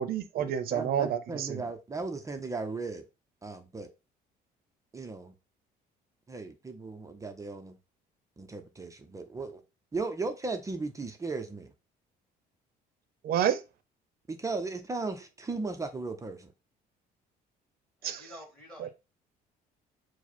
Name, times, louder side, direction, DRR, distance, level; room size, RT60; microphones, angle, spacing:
voice 1, 0.0-1.6 13.2-13.6 18.0-18.3 18.8-18.9, right 9 dB, 60° right, 0.6 m, -29 dB
voice 2, 0.7-3.0 3.4-3.9 4.9-5.3 6.3-7.8 8.4-9.6 9.9-11.7 14.3-16.5, right 3 dB, 20° right, 0.5 m, -36 dB
voice 3, 18.0-18.9, equal, 5° left, 1.9 m, -49 dB
4.7 x 2.1 x 4.2 m
cardioid pair, 110°, 17 cm